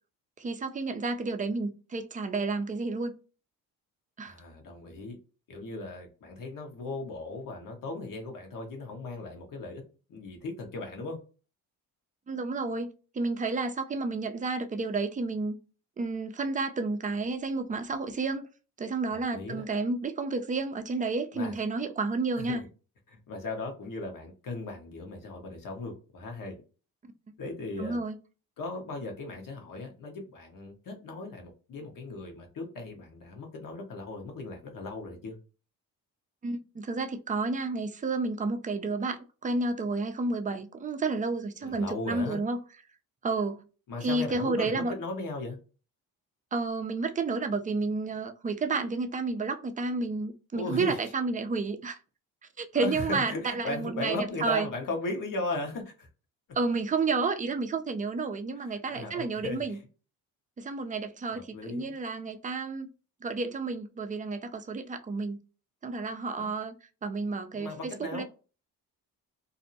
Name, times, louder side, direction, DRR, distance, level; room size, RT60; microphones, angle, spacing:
voice 1, 0.4-3.1 4.2-4.3 12.3-15.6 16.0-18.5 18.8-22.6 27.8-28.2 36.4-42.6 43.2-43.6 44.0-44.9 46.5-52.0 52.6-54.7 56.6-59.8 60.6-62.9 63.2-65.4 65.8-66.8 67.0-68.2, right 3 dB, 20° right, 0.5 m, -31 dB
voice 2, 4.2-5.2 5.5-9.8 10.1-11.2 19.1-19.6 21.3-21.6 22.4-22.6 23.1-26.5 27.4-28.0 28.6-35.4 41.6-42.4 43.9-45.6 50.5-51.0 52.7-56.1 58.9-59.6 61.3-61.9 66.4-66.5 67.5-68.2, left 2 dB, 60° left, 1.1 m, -37 dB
2.6 x 2.1 x 2.6 m
cardioid pair, 80°, 37 cm